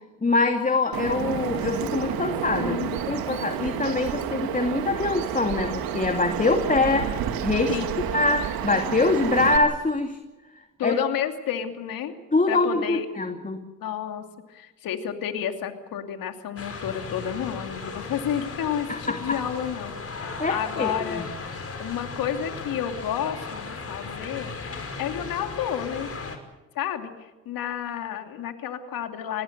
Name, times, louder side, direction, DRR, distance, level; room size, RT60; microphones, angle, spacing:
voice 1, 0.2-2.8 3.1-7.8 8.1-10.2 10.8-11.0 12.3-13.6 18.9-19.4 20.4-21.3, left 3 dB, 20° left, 5 dB, 2.5 m, -24 dB
Bird vocalization bird call bird song, 0.9-9.6, right 9 dB, 75° right, 2.4 m, -30 dB
voice 2, 2.6-3.2 7.7-8.0 10.8-12.1 12.5-13.1 13.8-21.3 21.8-24.6 25.0-26.1 26.7-29.4, left 9 dB, 70° left, 6 dB, 2.8 m, -31 dB
sound 1, 16.6-26.4, left 4 dB, 40° left, 5.3 m, -36 dB
26.0 x 20.0 x 6.8 m, 1.1 s
supercardioid pair, 65°, 36 cm